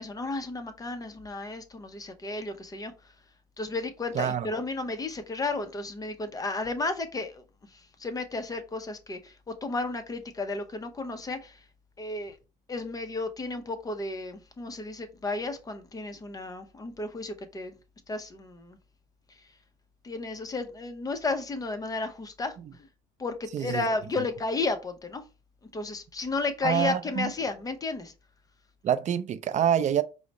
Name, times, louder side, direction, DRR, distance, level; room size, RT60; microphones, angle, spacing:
voice 1, 0.0-2.9 3.6-7.4 7.7-11.6 12.0-12.4 12.7-17.7 18.1-18.8 20.0-22.9 23.2-25.2 25.7-28.1, left 3 dB, 20° left, 0.7 m, -33 dB
voice 2, 4.1-4.5 23.5-23.9 26.6-27.3 28.8-30.0, right 9 dB, 45° right, 0.4 m, -26 dB
4.7 x 2.1 x 4.0 m
cardioid pair, 110°, 17 cm